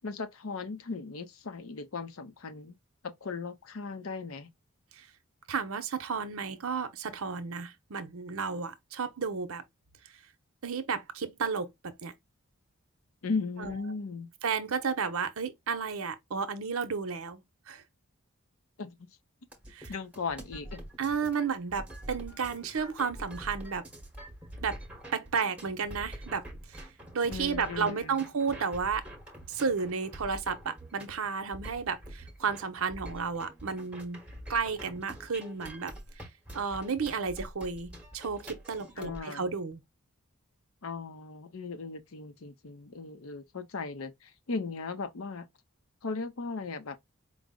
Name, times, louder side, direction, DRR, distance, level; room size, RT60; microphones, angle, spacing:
voice 1, 0.0-2.7 3.0-4.5 13.2-14.3 18.8-19.1 19.9-20.8 27.3-28.2 39.0-39.5 40.8-45.5 46.0-47.0, left 4 dB, 75° left, 0.6 m, -37 dB
voice 2, 5.5-9.6 10.6-12.1 13.6-13.8 14.4-17.4 17.7-17.8 19.7-19.9 21.0-23.8 24.6-24.8 25.1-26.9 27.1-29.0 29.5-34.2 34.5-36.2 36.5-39.8, right 5 dB, 75° right, 0.7 m, -32 dB
sound 1, 19.5-39.2, right 1 dB, 5° right, 0.9 m, -46 dB
4.7 x 2.1 x 3.6 m
head